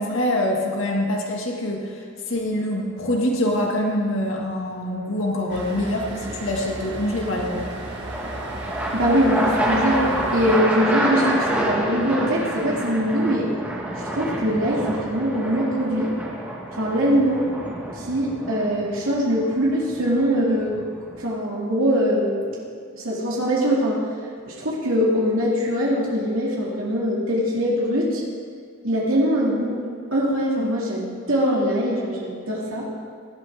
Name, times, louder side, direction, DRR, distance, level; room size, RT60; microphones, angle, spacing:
voice 1, 0.0-7.7, left 1 dB, 75° left, -1 dB, 2.1 m, -25 dB
sound 1, 2.4-2.9 6.7-21.3, right 1 dB, 10° right, 2.0 m, -28 dB
sound 2, 5.5-10.6, right 1 dB, 55° right, 1.8 m, -35 dB
voice 2, 8.9-10.0 10.3-13.5 14.0-16.1 16.8-17.4 17.9-20.8 21.2-22.6 22.9-24.0 24.4-28.2 28.8-29.8 30.1-32.9, equal, 85° right, -4 dB, 2.5 m, -22 dB
18.0 x 12.5 x 3.7 m, 2.3 s
head